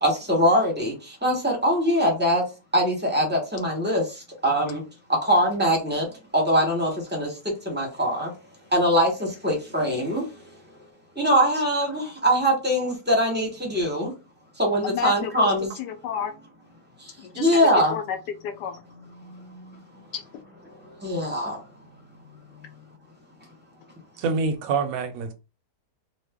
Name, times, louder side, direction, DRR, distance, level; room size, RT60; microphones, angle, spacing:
voice 1, 0.0-2.5 2.7-4.8 5.1-6.1 6.3-7.3 7.6-8.3 8.7-10.3 11.2-14.1 14.6-15.7 17.0-18.0 19.2-19.8 21.0-21.6, equal, 10° right, 0.7 m, -23 dB
voice 2, 14.8-16.3 17.2-18.7 20.1-20.2, left 8 dB, 80° left, 1.2 m, -31 dB
voice 3, 24.2-25.3, right 4 dB, 65° right, 1.0 m, -26 dB
3.2 x 2.1 x 3.5 m
omnidirectional pair, 1.8 m